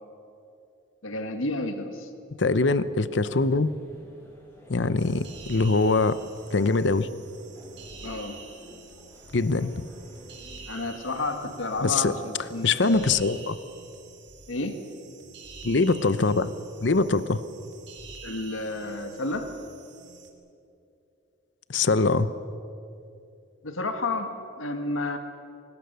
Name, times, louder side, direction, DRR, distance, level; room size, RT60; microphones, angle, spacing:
voice 1, 1.0-2.1 8.0-8.4 10.7-13.2 14.5-14.8 18.2-19.5 23.6-25.2, left 2 dB, 85° left, 7 dB, 1.7 m, -31 dB
voice 2, 2.4-3.7 4.7-6.2 6.5-7.1 9.3-9.8 11.8-12.1 12.6-13.6 15.6-16.5 16.8-17.4 21.7-22.3, left 3 dB, 65° left, 14 dB, 0.7 m, -23 dB
sound 1, 3.0-11.8, left 1 dB, 15° left, 5.8 m, -52 dB
sound 2, 5.0-20.3, right 4 dB, 60° right, 2.7 m, -47 dB
25.0 x 19.5 x 6.8 m, 2.7 s
head